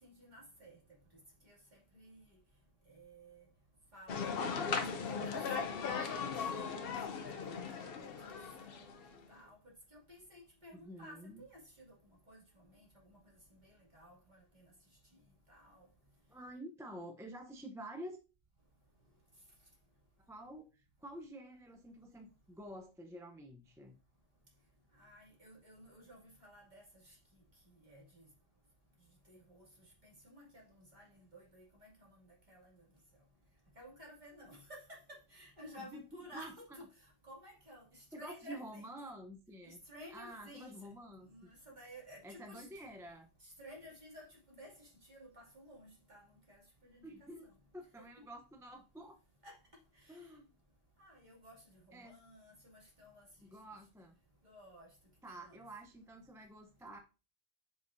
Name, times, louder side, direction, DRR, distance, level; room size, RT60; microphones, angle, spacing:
voice 1, 0.0-0.8 1.4-2.2 2.9-3.4 3.9-5.2 5.6-8.2 8.6-8.9 9.3-11.9 12.3-13.2 13.5-14.7 15.5-15.9 25.0-27.2 27.8-28.3 29.3-29.7 30.0-32.8 33.8-39.0 39.6-40.7 41.3-42.7 43.4-47.3 48.0-48.1 49.4-49.6 49.9-50.3 51.0-53.5 54.4-54.9 55.3-55.6, equal, 45° right, 2.6 m, -56 dB
sound 1, 4.1-9.2, left 5 dB, 70° left, 0.9 m, -38 dB
voice 2, 10.8-11.4 16.3-18.2 20.2-24.0 35.8-36.5 38.1-39.8 40.1-41.5 42.2-43.3 47.0-49.2 50.1-50.5 51.9-52.2 53.4-54.2 55.2-57.0, right 1 dB, 5° right, 0.6 m, -49 dB
6.9 x 5.5 x 2.6 m
omnidirectional pair, 1.0 m